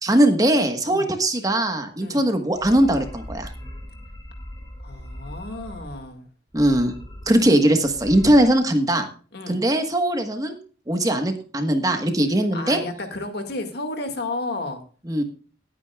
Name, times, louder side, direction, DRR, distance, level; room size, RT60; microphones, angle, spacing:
voice 1, 0.0-3.5 6.5-6.9 7.3-9.1 9.5-10.6 10.9-12.8 15.1-15.2, right 1 dB, 20° right, 6 dB, 1.3 m, -20 dB
sound 1, 2.5-6.1 6.5-7.5 7.8-8.5, equal, 20° left, 2.7 m, -39 dB
voice 2, 4.8-6.3 9.3-9.6 12.5-14.8, left 2 dB, 55° left, 6 dB, 2.1 m, -32 dB
19.0 x 9.1 x 2.4 m, 0.38 s
head